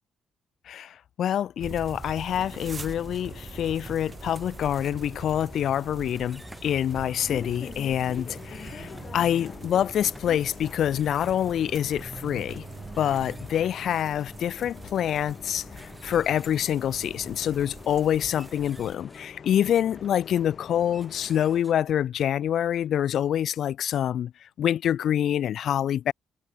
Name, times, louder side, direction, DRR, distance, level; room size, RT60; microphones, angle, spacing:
voice 1, 0.7-12.7 13.0-24.3 24.6-26.1, left 10 dB, 70° left, 0.4 m, -26 dB
sound 1, 1.6-19.0, right 4 dB, 30° right, 1.8 m, -43 dB
Bus, 2.3-21.6, left 6 dB, 45° left, 7.4 m, -45 dB
sound 2, 6.1-23.4, equal, 5° right, 3.3 m, -54 dB
cardioid pair, 90°, 0 cm